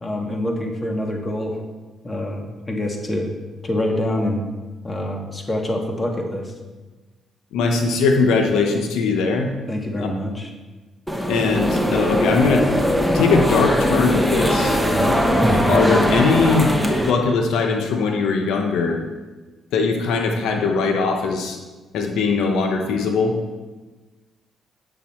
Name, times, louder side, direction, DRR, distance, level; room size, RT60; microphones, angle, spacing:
voice 1, 0.0-1.6 2.0-3.3 3.6-4.4 4.8-6.5 9.7-10.5 14.8-15.2, left 1 dB, 25° left, 2 dB, 1.7 m, -25 dB
voice 2, 7.5-9.5 10.0-10.1 11.3-12.7 13.1-14.8 15.5-16.7 17.1-19.0 19.7-21.6 21.9-23.4, left 4 dB, 85° left, 3 dB, 0.9 m, -20 dB
sound 1, 11.1-17.1, equal, 5° left, 1.1 m, -20 dB
9.2 x 7.2 x 4.4 m, 1.2 s
cardioid pair, 90°, 0 cm